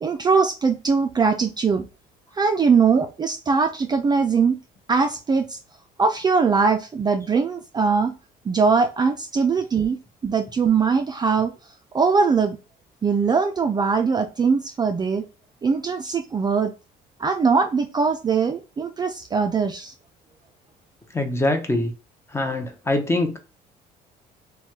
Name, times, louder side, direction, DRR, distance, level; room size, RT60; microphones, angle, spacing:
voice 1, 0.0-1.9 2.4-4.6 4.9-5.6 6.0-8.1 8.5-10.0 10.2-11.5 11.9-12.6 13.0-15.3 15.6-16.7 17.2-19.9, right 5 dB, 25° right, 0.4 m, -21 dB
voice 2, 21.1-21.9 22.3-23.4, left 2 dB, 15° left, 0.6 m, -23 dB
3.1 x 2.2 x 2.8 m
cardioid pair, 110°, 17 cm